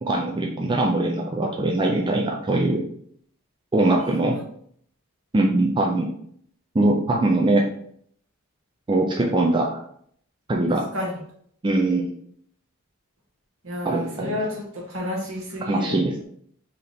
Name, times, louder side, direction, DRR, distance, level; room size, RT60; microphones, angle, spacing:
voice 1, 0.0-2.8 3.7-4.4 5.3-6.1 6.7-7.7 8.9-9.8 10.5-10.8 11.6-12.1 13.8-14.3 15.7-16.2, right 2 dB, 20° right, 0 dB, 0.4 m, -22 dB
voice 2, 10.7-11.2 13.6-16.0, left 1 dB, 65° right, 0 dB, 1.1 m, -30 dB
3.3 x 2.8 x 3.9 m, 0.65 s
head